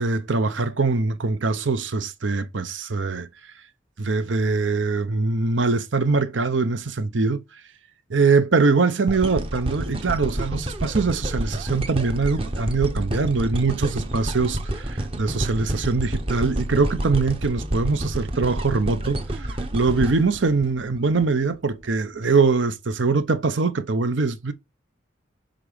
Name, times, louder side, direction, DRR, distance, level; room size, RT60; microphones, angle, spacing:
voice 1, 0.0-3.3 4.0-7.4 8.1-24.5, right 4 dB, 85° right, 0.8 m, -23 dB
sound 1, 9.1-21.3 21.8-21.9, right 1 dB, 30° right, 0.8 m, -29 dB
6.7 x 3.8 x 4.9 m
head